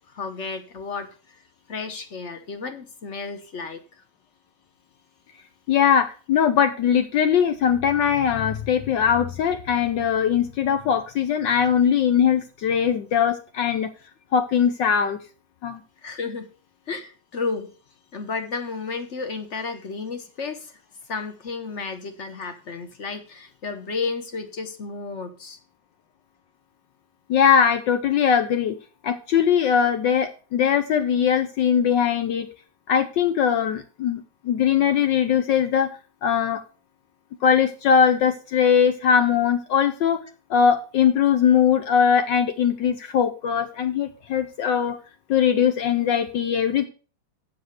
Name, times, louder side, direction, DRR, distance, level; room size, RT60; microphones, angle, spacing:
voice 1, 0.1-1.4 1.7-3.8 16.0-16.5 16.9-17.7 18.1-20.8 21.1-25.6, left 4 dB, 40° left, 7 dB, 1.3 m, -32 dB
voice 2, 5.7-13.9 14.3-15.2 15.6-15.8 27.3-28.8 29.0-32.5 32.9-35.9 36.2-36.6 37.4-40.2 40.5-45.0 45.3-46.9, left 8 dB, 70° left, 9 dB, 1.4 m, -20 dB
7.8 x 6.4 x 6.4 m, 0.37 s
omnidirectional pair, 2.2 m